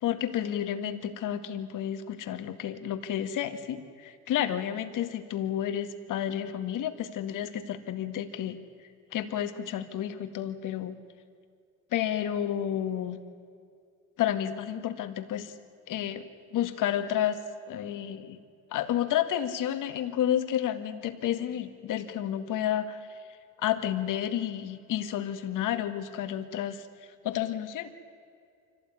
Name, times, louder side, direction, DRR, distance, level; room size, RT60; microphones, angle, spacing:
voice 1, 0.0-8.6 9.1-11.0 11.9-13.2 14.2-15.5 15.9-17.4 17.7-18.4 18.7-23.0 23.6-26.8 27.2-27.9, left 10 dB, 65° left, 9 dB, 2.0 m, -31 dB
25.0 x 17.0 x 9.7 m, 2.3 s
supercardioid pair, 90°, 34 cm